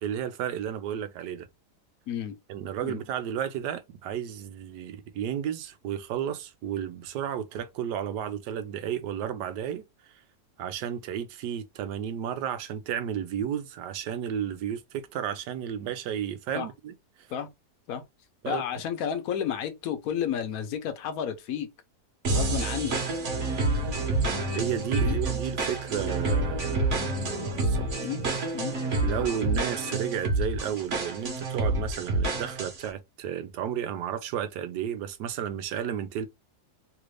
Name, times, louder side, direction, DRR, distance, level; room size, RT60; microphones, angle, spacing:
voice 1, 0.0-1.5 2.5-9.9 10.6-16.9 18.4-18.6 24.1-27.9 29.0-36.3, right 9 dB, 90° right, 1.2 m, -33 dB
voice 2, 18.4-21.7 22.3-23.0 25.0-25.2 28.0-28.3 28.5-28.8 29.1-29.3, left 9 dB, 65° left, 1.2 m, -32 dB
sound 1, 22.2-32.9, right 2 dB, 50° right, 1.2 m, -28 dB
3.3 x 2.5 x 3.2 m
omnidirectional pair, 1.8 m